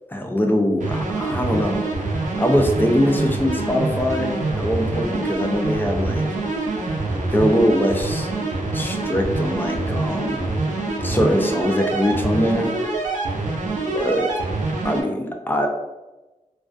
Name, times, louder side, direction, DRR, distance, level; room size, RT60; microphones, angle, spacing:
voice 1, 0.1-1.8 2.4-6.3 7.3-8.3 8.7-10.4 11.0-12.7 13.9-14.2 14.8-15.7, equal, 15° left, 2 dB, 0.4 m, -22 dB
sound 1, 0.8-15.0, right 2 dB, 70° right, 0.5 m, -25 dB
2.3 x 2.3 x 2.4 m, 1.1 s
wide cardioid pair, 95°, 13 cm